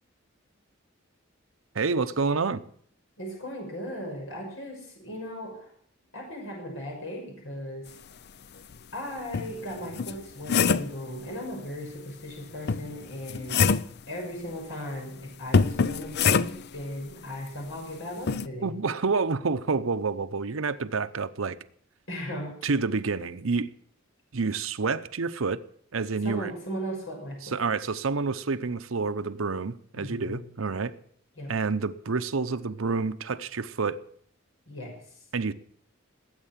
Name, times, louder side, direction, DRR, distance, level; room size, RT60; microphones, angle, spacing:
voice 1, 1.7-2.6 18.6-21.6 22.6-23.7 24.3-25.6 25.9-26.5 27.5-30.9 31.5-34.0 35.3-35.5, right 4 dB, 90° right, 0.8 m, -28 dB
voice 2, 3.2-5.7 6.1-7.9 8.9-13.7 14.1-18.7 22.1-22.5 26.2-27.6 30.0-30.5 31.4-31.5 34.7-34.9, equal, 75° left, 6.1 m, -37 dB
sound 1, 8.7-8.8 9.3-11.0 12.7-14.0 15.5-16.7 18.3-18.5, left 5 dB, 55° left, 0.6 m, -24 dB
19.5 x 9.0 x 7.4 m
head